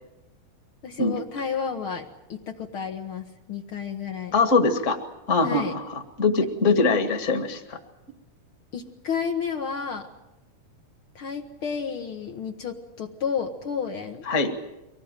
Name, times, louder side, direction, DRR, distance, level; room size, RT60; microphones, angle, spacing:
voice 1, 0.8-4.3 5.4-5.7 8.7-10.1 11.1-14.2, left 6 dB, 90° left, 2 dB, 1.1 m, -31 dB
voice 2, 4.3-5.0 5.3-7.8 14.3-14.5, left 3 dB, 35° left, 6 dB, 1.2 m, -22 dB
24.0 x 18.5 x 9.0 m, 0.95 s
omnidirectional pair, 4.4 m